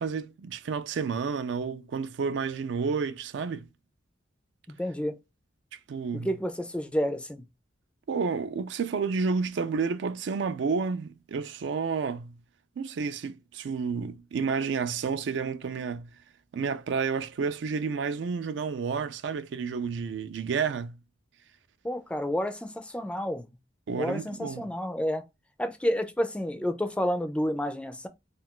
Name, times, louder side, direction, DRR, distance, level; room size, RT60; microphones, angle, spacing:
voice 1, 0.0-3.7 5.9-6.3 8.1-12.4 12.8-16.1 16.5-21.0 23.9-24.7, right 5 dB, 70° right, 0.4 m, -30 dB
voice 2, 4.7-5.2 6.1-7.4 21.8-23.4 23.9-25.2 25.6-28.1, equal, 5° left, 0.3 m, -30 dB
2.4 x 2.3 x 3.6 m
head